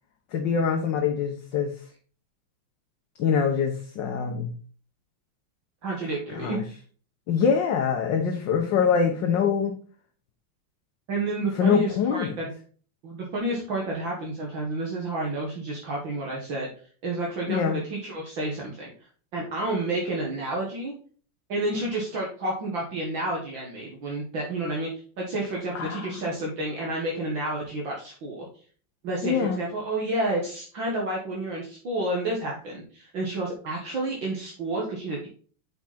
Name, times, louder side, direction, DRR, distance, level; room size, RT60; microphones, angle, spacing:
voice 1, 0.3-1.7 3.2-4.5 6.3-6.6 7.3-9.7 11.6-12.3 17.5-17.8 25.7-26.2 29.2-29.7, left 6 dB, 65° left, 3 dB, 1.5 m, -24 dB
voice 2, 5.8-6.6 11.1-12.5 13.0-16.7 17.0-18.9 19.3-20.9 21.5-24.9 25.2-28.5 29.0-35.3, right 2 dB, 60° right, -2 dB, 2.5 m, -30 dB
7.4 x 5.9 x 4.2 m, 0.42 s
omnidirectional pair, 2.4 m